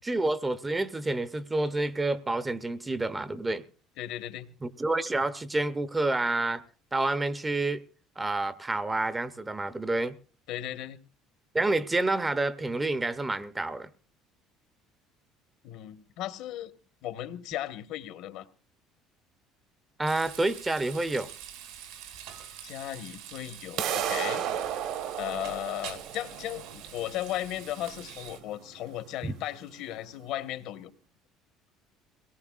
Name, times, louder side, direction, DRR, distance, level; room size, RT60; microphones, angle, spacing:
voice 1, 0.0-3.6 4.6-6.6 6.9-7.8 8.2-10.1 11.5-13.9 20.0-21.3 29.2-29.3, right 2 dB, 10° right, 0.6 m, -28 dB
voice 2, 4.0-4.5 10.5-11.0 15.6-16.7 17.0-18.5 22.6-24.4 25.2-30.9, left 13 dB, 70° left, 1.2 m, -36 dB
Frying (food), 20.1-28.4, right 9 dB, 85° right, 2.6 m, -45 dB
sound 1, 23.8-29.7, right 9 dB, 65° right, 1.3 m, -34 dB
22.5 x 18.0 x 2.4 m
cardioid pair, 155°, 0 cm